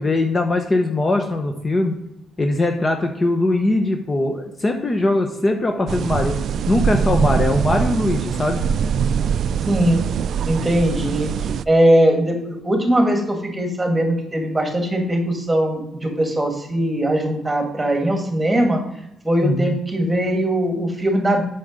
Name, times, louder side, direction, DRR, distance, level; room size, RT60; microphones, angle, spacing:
voice 1, 0.0-1.9 2.4-6.4 6.7-8.6 19.4-19.7, left 2 dB, 30° left, 4 dB, 1.0 m, -21 dB
sound 1, 5.9-11.6, right 7 dB, 65° right, 0.3 m, -22 dB
voice 2, 9.7-10.0 10.4-11.3 11.7-18.8 19.2-21.4, right 1 dB, 15° right, 3 dB, 2.1 m, -20 dB
7.1 x 5.9 x 5.2 m, 0.82 s
cardioid pair, 90°, 0 cm